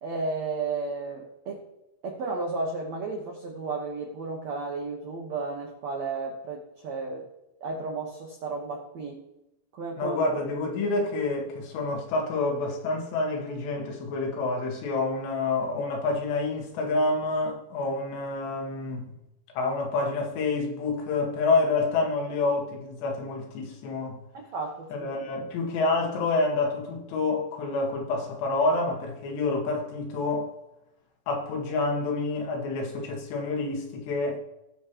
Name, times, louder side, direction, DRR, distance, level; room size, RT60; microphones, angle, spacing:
voice 1, 0.0-1.7 2.0-7.3 7.6-9.2 9.7-10.2 24.3-25.1, right 3 dB, 80° right, 1.5 m, -33 dB
voice 2, 10.0-19.1 19.6-24.2 24.9-30.5 31.3-34.4, left 3 dB, 75° left, 3.7 m, -28 dB
19.0 x 6.3 x 3.0 m
omnidirectional pair, 5.0 m